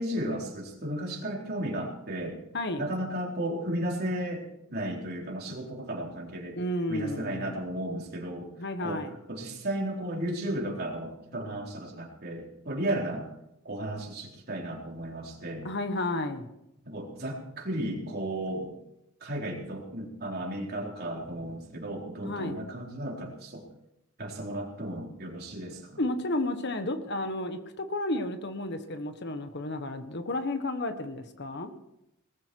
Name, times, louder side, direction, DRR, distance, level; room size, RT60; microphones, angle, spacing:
voice 1, 0.0-2.4 2.8-6.6 6.9-8.5 8.8-9.0 9.3-13.3 13.6-15.7 16.9-18.7 19.2-23.6 24.2-26.0, right 1 dB, 45° right, -1 dB, 4.0 m, -34 dB
voice 2, 2.5-2.8 6.6-7.5 8.6-9.1 15.6-16.5 22.2-22.6 26.0-31.7, left 1 dB, 50° left, 8 dB, 1.4 m, -32 dB
20.0 x 14.0 x 4.7 m, 0.85 s
head